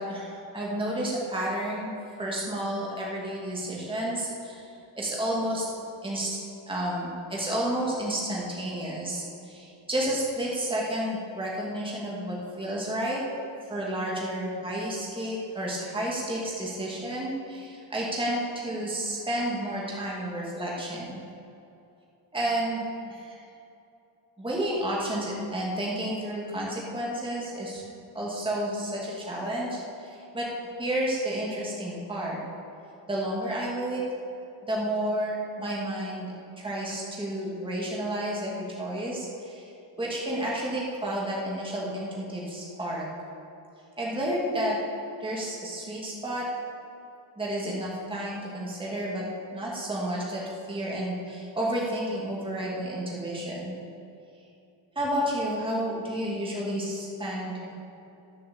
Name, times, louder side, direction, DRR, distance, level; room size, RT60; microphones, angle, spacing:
voice 1, 0.0-1.9 2.2-5.7 6.0-6.4 6.7-13.2 13.7-21.2 22.3-23.4 24.4-27.8 28.1-30.5 30.8-32.4 33.1-34.0 34.6-39.7 40.0-43.1 44.0-44.8 45.2-46.5 47.4-49.2 49.5-50.4 50.7-53.8 55.0-57.5, right 1 dB, 10° right, -5 dB, 2.4 m, -31 dB
11.5 x 7.6 x 7.0 m, 2.8 s
cardioid pair, 120°, 46 cm